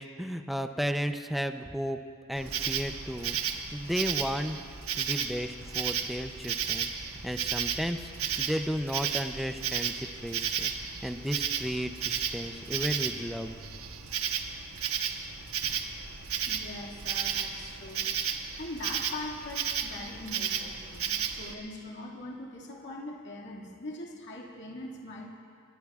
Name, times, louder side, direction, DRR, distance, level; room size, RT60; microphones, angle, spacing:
voice 1, 0.0-2.0 2.3-3.4 3.7-4.6 5.0-6.9 7.2-10.7 11.0-13.6, equal, ahead, 7 dB, 0.5 m, -33 dB
Insect, 2.3-21.5, right 8 dB, 80° right, 1.1 m, -33 dB
voice 2, 16.5-25.3, left 2 dB, 60° left, -2 dB, 2.1 m, -42 dB
26.0 x 21.5 x 2.4 m, 2.3 s
head